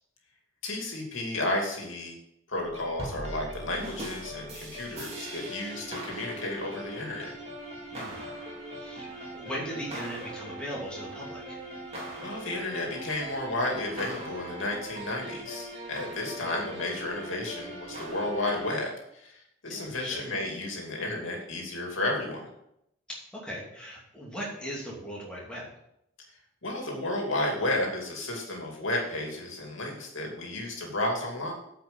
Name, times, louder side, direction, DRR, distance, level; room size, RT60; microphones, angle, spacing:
voice 1, 0.6-2.2 2.5-7.3 12.2-19.3 19.6-22.5 26.6-31.5, left 2 dB, 80° left, 0 dB, 2.6 m, -32 dB
sound 1, 2.5-18.8, right 1 dB, 30° right, 2.8 m, -40 dB
voice 2, 7.9-8.3 8.7-11.6 19.7-20.2 23.1-25.7, equal, 5° left, -6 dB, 2.7 m, -39 dB
9.0 x 5.6 x 7.1 m, 0.79 s
head